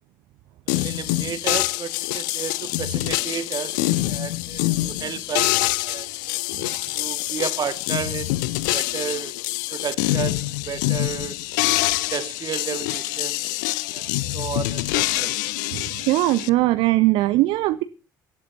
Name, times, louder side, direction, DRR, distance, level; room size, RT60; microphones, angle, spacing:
sound 1, 0.7-16.5, left 18 dB, 65° left, 0.7 m, -25 dB
voice 1, 0.7-6.1 6.9-8.3 8.7-9.3 9.7-11.4 12.0-13.5 13.9-15.3, right 8 dB, 40° right, 1.8 m, -32 dB
voice 2, 15.7-17.8, right 17 dB, 55° right, 0.8 m, -20 dB
25.0 x 12.0 x 2.8 m
figure-of-eight pair, 50°, 11 cm